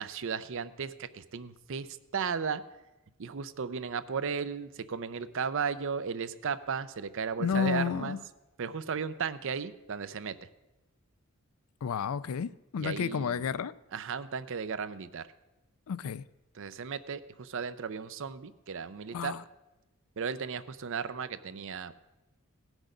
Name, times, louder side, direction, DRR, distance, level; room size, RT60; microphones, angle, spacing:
voice 1, 0.0-2.6 3.2-8.2 8.6-10.4 12.8-13.5 13.9-15.3 16.5-19.4 20.2-21.9, right 6 dB, 60° right, 0.6 m, -35 dB
voice 2, 7.4-8.2 11.8-13.7 15.9-16.2 19.1-19.4, left 6 dB, 75° left, 0.4 m, -31 dB
17.5 x 6.2 x 5.1 m
head